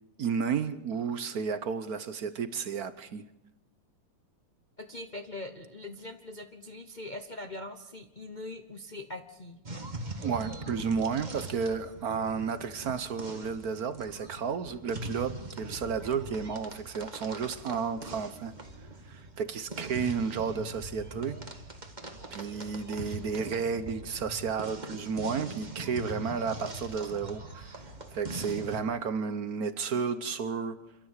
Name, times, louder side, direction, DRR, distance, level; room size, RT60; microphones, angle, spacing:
voice 1, 0.2-3.3 10.2-18.6 19.1-21.4 22.3-27.8 28.1-30.8, right 6 dB, 55° right, 1.1 m, -32 dB
voice 2, 4.8-9.6, left 2 dB, 45° left, 0.5 m, -42 dB
sound 1, 9.7-28.8, right 2 dB, 20° right, 1.7 m, -42 dB
27.5 x 12.5 x 8.2 m
omnidirectional pair, 2.3 m